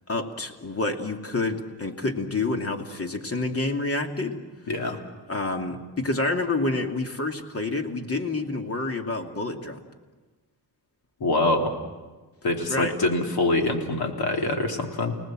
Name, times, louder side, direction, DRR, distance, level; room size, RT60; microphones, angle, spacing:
voice 1, 0.1-4.4 5.3-9.8 12.7-13.0, left 2 dB, 35° left, 4 dB, 2.8 m, -28 dB
voice 2, 4.7-5.0 11.2-11.7 12.4-15.2, left 2 dB, 65° left, 3 dB, 3.4 m, -24 dB
30.0 x 19.5 x 7.6 m, 1.3 s
cardioid pair, 85°, 40 cm